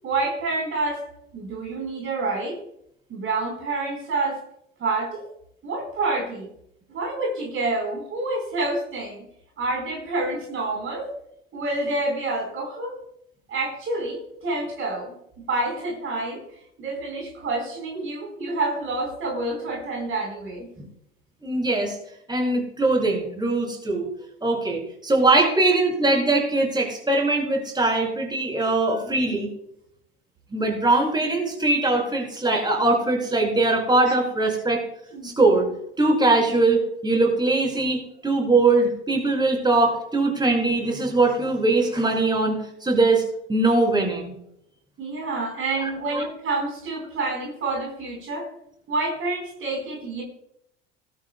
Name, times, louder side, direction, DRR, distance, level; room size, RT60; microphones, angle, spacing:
voice 1, 0.0-1.0 1.3-2.6 3.1-4.4 4.8-5.3 5.6-6.5 6.9-9.2 9.6-11.1 11.5-13.0 13.5-15.2 15.5-16.4 16.8-20.7 35.1-35.3 45.0-48.5 48.9-50.2, right 2 dB, 35° right, 0 dB, 4.5 m, -28 dB
voice 2, 21.4-22.0 22.3-24.1 24.4-29.5 30.5-34.8 35.2-35.7 36.0-43.2 43.5-44.3 45.8-45.9 46.1-46.2, right 2 dB, 10° right, 1 dB, 5.6 m, -21 dB
19.5 x 12.0 x 2.3 m, 0.75 s
figure-of-eight pair, 70°, 35 cm